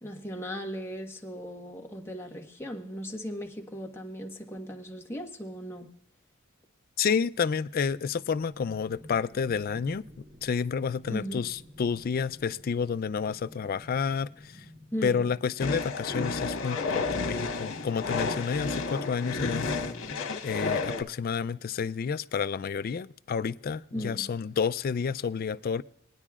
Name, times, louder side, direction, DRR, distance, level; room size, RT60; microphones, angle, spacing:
voice 1, 0.0-5.9 11.1-11.5 14.9-15.3 23.9-24.3, equal, 10° left, 1.2 m, -37 dB
voice 2, 7.0-14.7 15.0-19.7 20.4-25.8, left 6 dB, 45° left, 0.4 m, -30 dB
sound 1, 7.8-15.8, equal, 25° right, 1.7 m, -52 dB
sound 2, 15.6-21.0, left 4 dB, 75° left, 1.3 m, -31 dB
21.5 x 9.8 x 2.4 m
head